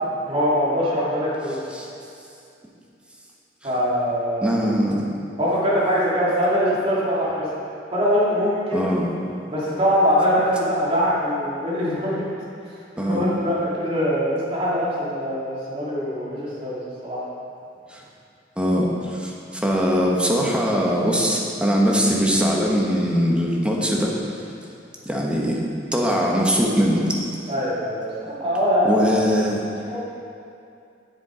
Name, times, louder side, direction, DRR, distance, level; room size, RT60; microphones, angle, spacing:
voice 1, 0.2-1.5 3.6-4.6 5.4-7.5 7.9-8.9 9.5-12.3 13.0-16.8 17.0-17.2 27.5-29.4 29.8-30.0, equal, 35° right, -8 dB, 2.6 m, -22 dB
voice 2, 4.4-5.0 8.7-9.1 13.0-13.2 17.9-18.0 18.6-24.1 25.0-25.6 25.9-27.2 28.8-29.6, equal, 5° right, -3 dB, 1.2 m, -21 dB
10.0 x 7.1 x 4.9 m, 2.5 s
head